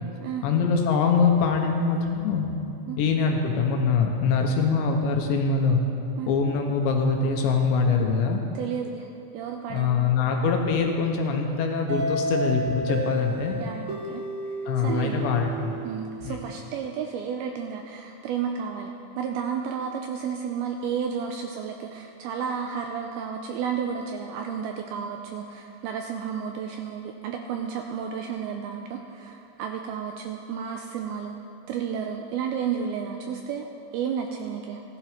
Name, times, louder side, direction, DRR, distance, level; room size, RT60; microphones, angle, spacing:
voice 1, 0.4-2.5 3.0-5.8 6.3-8.4 9.7-13.6 14.7-15.8 16.2-16.4, left 5 dB, 85° left, 2 dB, 3.6 m, -23 dB
voice 2, 8.6-9.1 9.3-10.0 13.6-14.2 14.8-15.2 15.8-33.7 33.9-34.8, right 7 dB, 85° right, 3 dB, 2.3 m, -32 dB
sound 1, 11.9-16.6, right 1 dB, 60° right, 3.6 m, -32 dB
16.0 x 12.0 x 5.1 m, 2.6 s
omnidirectional pair, 5.0 m